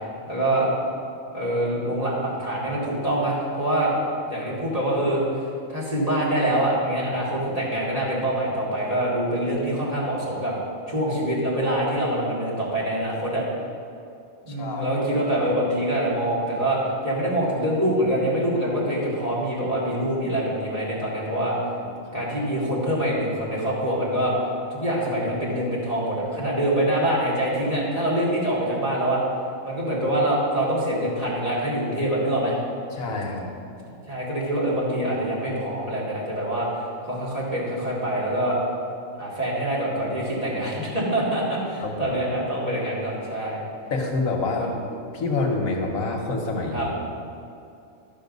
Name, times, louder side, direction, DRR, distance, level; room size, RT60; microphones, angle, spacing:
voice 1, 0.3-0.7 1.3-3.9 4.2-5.2 5.7-10.5 10.9-13.4 14.4-21.6 22.1-24.3 24.7-29.2 29.6-32.6 34.1-38.6 39.2-43.6 44.6-44.7 46.7-46.9, right 1 dB, 25° right, -7 dB, 2.5 m, -25 dB
voice 2, 14.5-14.9 21.8-22.2 32.9-33.5 41.8-42.1 43.9-47.0, left 3 dB, 80° left, 1 dB, 1.6 m, -27 dB
12.5 x 5.6 x 5.4 m, 2.5 s
omnidirectional pair, 1.4 m